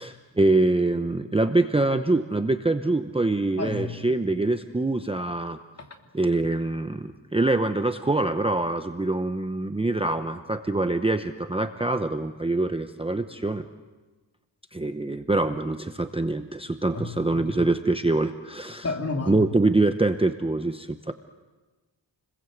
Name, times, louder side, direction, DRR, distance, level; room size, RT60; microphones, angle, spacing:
voice 1, 0.0-5.6 6.1-13.7 14.7-18.9 19.3-21.1, right 2 dB, 15° right, 8 dB, 0.8 m, -24 dB
voice 2, 3.6-4.0 16.9-17.1 17.4-17.6 18.8-19.4, left 3 dB, 35° left, 3 dB, 3.1 m, -30 dB
29.0 x 21.5 x 8.0 m, 1.3 s
wide cardioid pair, 120°, 44 cm